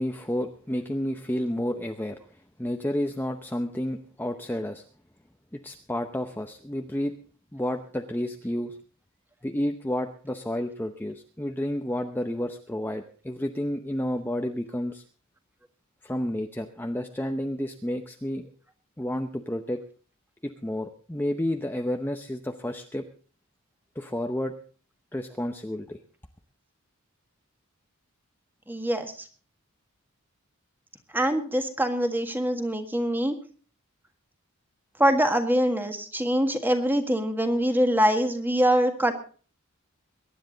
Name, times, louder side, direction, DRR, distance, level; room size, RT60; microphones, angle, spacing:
voice 1, 0.0-2.2 2.6-4.8 5.5-7.1 7.5-8.8 9.4-15.0 16.0-18.5 19.0-19.8 20.4-23.0 24.0-24.5 25.1-26.0, left 1 dB, 10° left, 5 dB, 0.7 m, -30 dB
voice 2, 28.7-29.1 31.1-33.4 35.0-39.1, equal, 10° right, 6 dB, 1.7 m, -24 dB
22.5 x 10.5 x 3.9 m, 0.40 s
head